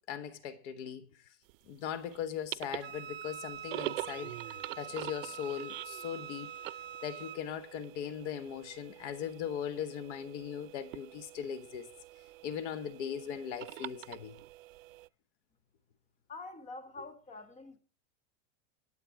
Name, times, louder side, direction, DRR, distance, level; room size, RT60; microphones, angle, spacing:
voice 1, 0.1-1.1 1.7-6.5 7.0-11.9 12.4-14.3, left 8 dB, 60° left, 1.3 m, -39 dB
sound 1, 1.5-15.1, right 18 dB, 80° right, 0.6 m, -45 dB
Wind instrument woodwind instrument, 2.8-7.4, right 8 dB, 30° right, 1.2 m, -45 dB
voice 2, 16.3-17.8, left 3 dB, 20° left, 1.5 m, -46 dB
19.5 x 7.9 x 4.7 m
supercardioid pair, 155°, 38 cm